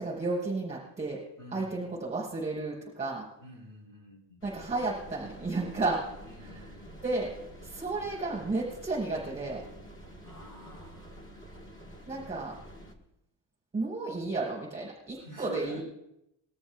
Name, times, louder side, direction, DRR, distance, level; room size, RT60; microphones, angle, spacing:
voice 1, 0.0-1.2 1.5-3.3 4.4-6.0 6.4-6.7 7.0-7.3 7.6-9.6 12.1-12.5 13.7-15.8, right 3 dB, 15° right, -7 dB, 5.4 m, -32 dB
voice 2, 1.4-1.7 3.4-4.4 6.3-7.0 10.2-11.2 15.2-15.8, left 1 dB, 45° left, -1 dB, 5.2 m, -48 dB
sound 1, 4.4-12.9, equal, 25° left, 1.5 m, -48 dB
21.5 x 13.5 x 2.4 m, 0.84 s
cardioid pair, 170°, 45 cm